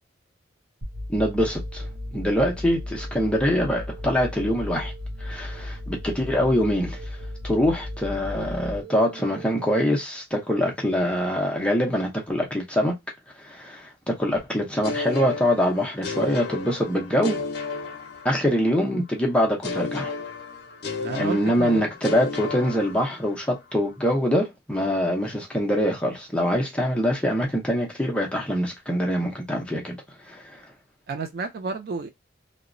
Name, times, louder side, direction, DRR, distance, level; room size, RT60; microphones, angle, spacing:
sound 1, 0.8-9.8, left 1 dB, 85° right, 0.7 m, -35 dB
voice 1, 1.1-1.9 2.1-4.9 5.2-7.2 7.4-13.0 13.4-17.4 18.2-20.1 21.2-30.0 30.2-30.6, equal, 5° left, 0.6 m, -24 dB
sound 2, 14.8-18.8 19.6-23.5, left 4 dB, 55° left, 0.7 m, -33 dB
voice 2, 21.0-21.9 31.1-32.1, right 4 dB, 50° right, 0.3 m, -31 dB
2.8 x 2.0 x 2.5 m
head